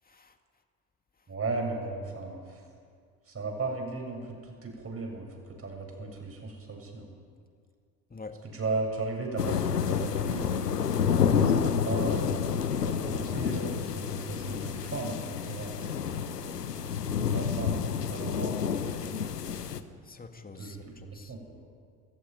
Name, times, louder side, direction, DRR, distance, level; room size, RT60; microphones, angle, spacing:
voice 1, 1.3-2.6 3.3-7.1 8.5-10.7 11.2-12.4 12.8-16.4 17.3-19.6 20.6-21.6, right 3 dB, 30° right, 1 dB, 7.5 m, -36 dB
voice 2, 8.1-8.4 20.1-21.3, left 3 dB, 20° left, 6 dB, 2.2 m, -46 dB
sound 1, 9.4-19.8, left 7 dB, 90° left, 0.9 m, -29 dB
20.5 x 15.0 x 9.5 m, 2.1 s
figure-of-eight pair, 60°, 46 cm